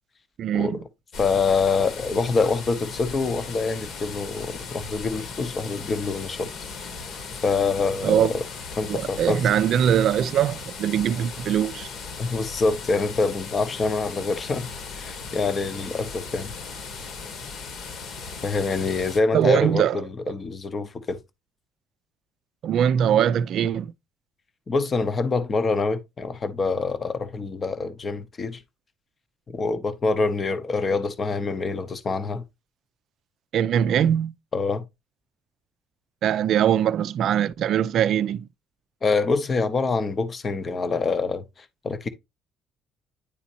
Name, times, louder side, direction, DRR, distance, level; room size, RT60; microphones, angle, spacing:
voice 1, 0.4-0.8 8.0-8.3 8.9-11.9 19.3-20.0 22.6-23.9 33.5-34.3 36.2-38.5, right 9 dB, 50° right, 0.4 m, -22 dB
sound 1, 1.1-19.2, left 4 dB, 50° left, 1.3 m, -37 dB
voice 2, 1.2-6.5 7.4-8.4 8.8-9.4 12.2-14.7 15.0-16.5 18.4-21.2 24.7-28.6 29.5-32.4 34.5-34.8 39.0-41.4 41.8-42.1, left 4 dB, 25° left, 0.8 m, -25 dB
9.9 x 4.1 x 2.7 m
cardioid pair, 165°, 0 cm